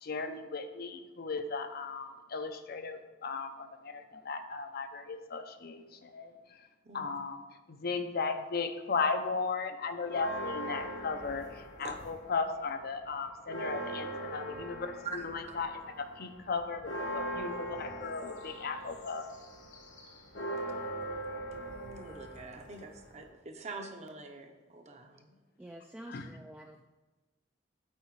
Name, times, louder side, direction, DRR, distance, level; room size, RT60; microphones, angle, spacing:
voice 1, 0.0-6.3 6.9-7.4 7.7-11.5 11.8-19.3 26.1-26.3, left 4 dB, 55° left, 7 dB, 0.6 m, -36 dB
sound 1, 10.1-12.4 12.8-23.3, right 1 dB, 70° left, 1.3 m, -41 dB
voice 2, 15.0-15.6 21.6-25.3, right 3 dB, 35° right, 4 dB, 0.8 m, -45 dB
voice 3, 25.6-26.9, right 1 dB, 10° right, 2 dB, 0.3 m, -48 dB
8.7 x 4.1 x 4.7 m, 1.2 s
head